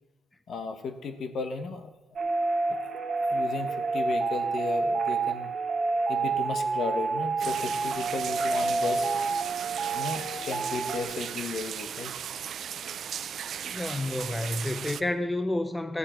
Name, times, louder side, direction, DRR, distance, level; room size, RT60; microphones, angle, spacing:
voice 1, 0.5-1.9 3.3-5.5 6.1-9.1 9.8-12.1, left 4 dB, 60° left, 1.2 m, -35 dB
sound 1, 2.2-11.0, right 3 dB, 45° right, 1.4 m, -28 dB
sound 2, 7.4-15.0, right 9 dB, 65° right, 0.4 m, -37 dB
voice 2, 13.7-16.0, left 1 dB, 15° left, 0.7 m, -30 dB
13.5 x 9.7 x 4.4 m
cardioid pair, 90°, 0 cm